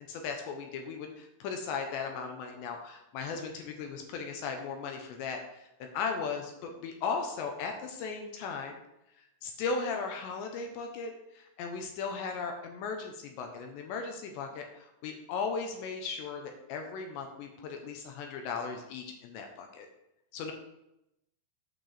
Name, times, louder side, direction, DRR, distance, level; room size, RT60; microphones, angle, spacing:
voice 1, 0.1-8.8 9.4-19.9 20.3-20.5, left 5 dB, 75° left, 4 dB, 2.7 m, -37 dB
9.2 x 4.5 x 6.7 m, 0.85 s
omnidirectional pair, 5.9 m